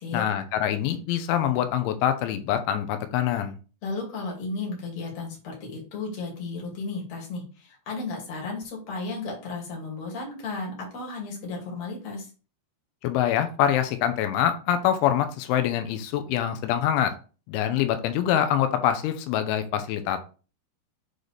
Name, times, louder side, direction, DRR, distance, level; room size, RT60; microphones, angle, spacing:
voice 1, 0.1-3.5 13.0-17.1 17.5-20.2, left 10 dB, 90° left, 8 dB, 3.1 m, -25 dB
voice 2, 3.8-12.3, left 3 dB, 45° left, -2 dB, 2.9 m, -34 dB
7.8 x 4.0 x 3.3 m, 0.35 s
omnidirectional pair, 5.5 m